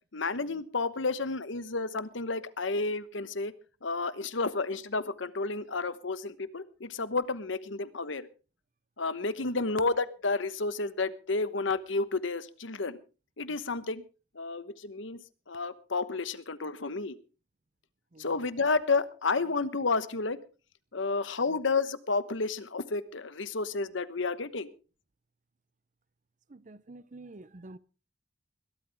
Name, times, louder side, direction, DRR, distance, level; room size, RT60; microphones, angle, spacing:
voice 1, 0.1-3.5 3.8-8.3 9.0-13.0 13.4-14.0 14.3-17.2 18.2-20.4 20.9-24.7, left 3 dB, 70° left, 1.1 m, -31 dB
voice 2, 26.5-27.8, right 2 dB, 40° right, 0.6 m, -48 dB
21.5 x 12.5 x 3.5 m
head